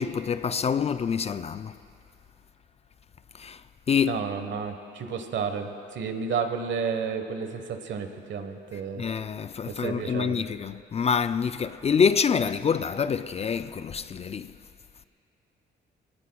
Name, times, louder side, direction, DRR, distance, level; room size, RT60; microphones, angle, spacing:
voice 1, 0.0-1.7 3.4-3.6 3.9-4.2 9.0-14.5, left 6 dB, 35° left, 0.4 m, -26 dB
voice 2, 4.0-9.0 9.6-10.4, right 6 dB, 70° right, 1.2 m, -31 dB
21.0 x 18.5 x 2.3 m
cardioid pair, 90°, 20 cm